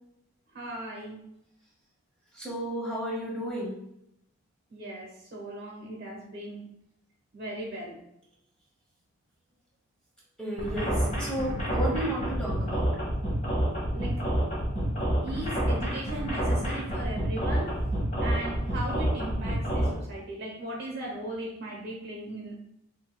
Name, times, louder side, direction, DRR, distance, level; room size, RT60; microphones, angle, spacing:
voice 1, 0.5-1.2 4.7-6.6 7.3-8.0 13.9-14.4 15.2-22.5, right 1 dB, 50° right, -1 dB, 1.1 m, -38 dB
voice 2, 2.3-3.8 10.4-12.9, right 1 dB, 5° left, -6 dB, 0.9 m, -33 dB
sound 1, 10.6-19.9, right 1 dB, 35° left, 1.1 m, -28 dB
5.2 x 2.8 x 2.2 m, 0.79 s
head